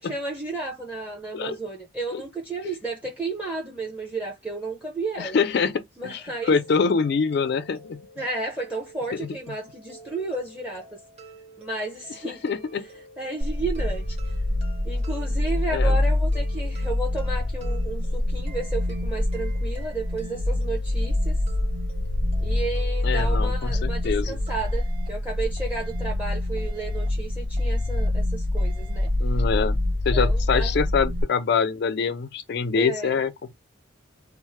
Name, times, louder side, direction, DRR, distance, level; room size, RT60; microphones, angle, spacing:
voice 1, 0.0-5.4 6.0-6.6 8.2-10.9 11.6-12.4 13.2-14.3 14.8-21.4 22.4-29.1 30.1-30.8 32.7-33.2, right 3 dB, 10° right, 0.7 m, -33 dB
voice 2, 5.2-8.0 9.1-9.3 12.2-12.9 15.7-16.0 23.0-24.4 29.2-29.8 30.1-33.6, left 5 dB, 55° left, 0.3 m, -25 dB
sound 1, 6.4-24.5, right 2 dB, 30° right, 1.3 m, -48 dB
sound 2, 13.4-31.2, left 1 dB, 90° right, 1.0 m, -25 dB
sound 3, 24.6-25.1 25.6-26.1 26.6-27.1 27.6-28.1 28.6-29.1, right 5 dB, 45° right, 0.8 m, -51 dB
3.1 x 2.1 x 4.2 m
head